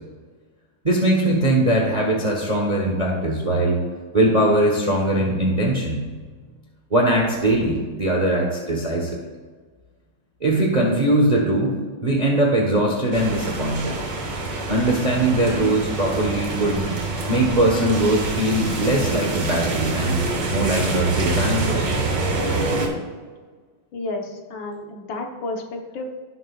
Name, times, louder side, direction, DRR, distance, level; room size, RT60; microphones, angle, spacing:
voice 1, 0.8-3.8 4.1-6.1 6.9-9.2 10.4-11.7 12.0-14.0 14.7-16.9 17.3-22.2, right 1 dB, 25° right, -1 dB, 1.1 m, -21 dB
sound 1, 13.1-22.9, right 3 dB, 80° right, 2.6 m, -26 dB
voice 2, 23.9-26.0, left 2 dB, 75° left, 2 dB, 1.9 m, -31 dB
17.0 x 6.3 x 2.4 m, 1.5 s
omnidirectional pair, 2.1 m